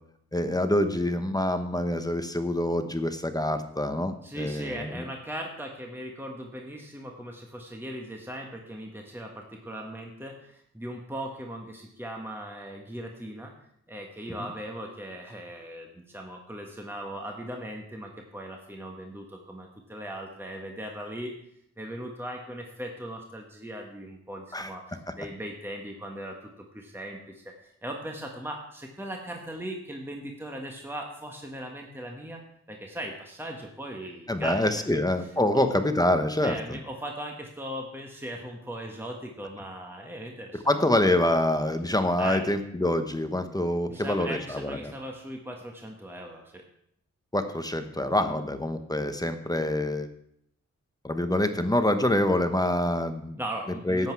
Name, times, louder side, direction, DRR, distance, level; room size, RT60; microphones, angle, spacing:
voice 1, 0.3-5.0 24.5-24.7 34.3-36.8 40.5-44.9 47.3-50.1 51.0-53.4 53.8-54.1, left 1 dB, 15° left, 8 dB, 1.0 m, -26 dB
voice 2, 4.2-13.5 13.9-21.3 21.8-27.5 27.8-32.4 32.7-34.6 34.9-35.0 35.5-35.6 36.4-40.6 42.2-42.5 43.9-46.6 48.3-48.4 53.4-54.1, right 1 dB, 10° right, 1 dB, 1.5 m, -38 dB
11.5 x 8.1 x 4.7 m, 0.71 s
wide cardioid pair, 80°, 29 cm